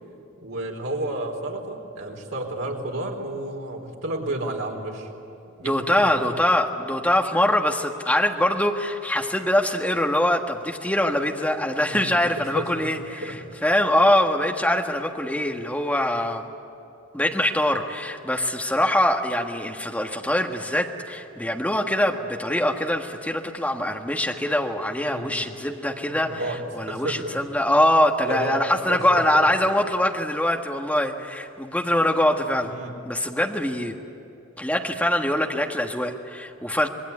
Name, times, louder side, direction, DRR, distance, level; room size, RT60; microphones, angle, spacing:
voice 1, 0.4-5.1 5.6-5.7 6.0-6.4 11.9-12.9 13.2-13.4 25.0-25.3 26.1-27.4 28.2-28.6 28.9-29.5 32.7-33.0, right 1 dB, 85° right, 1 dB, 4.3 m, -31 dB
voice 2, 5.6-16.5 17.1-26.4 26.7-32.7 33.0-34.0 34.6-36.9, left 1 dB, 5° left, 2 dB, 1.5 m, -23 dB
26.5 x 21.0 x 9.9 m, 2.7 s
head